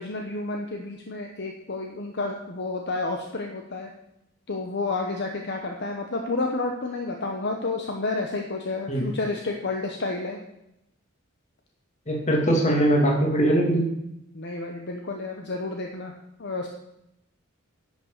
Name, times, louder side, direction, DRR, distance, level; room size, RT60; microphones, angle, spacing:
voice 1, 0.0-3.9 4.5-10.4 14.3-16.1 16.4-16.7, left 3 dB, 55° left, 2 dB, 1.0 m, -30 dB
voice 2, 12.1-13.9, right 1 dB, 35° left, 0 dB, 2.5 m, -21 dB
11.0 x 6.3 x 6.6 m, 0.84 s
head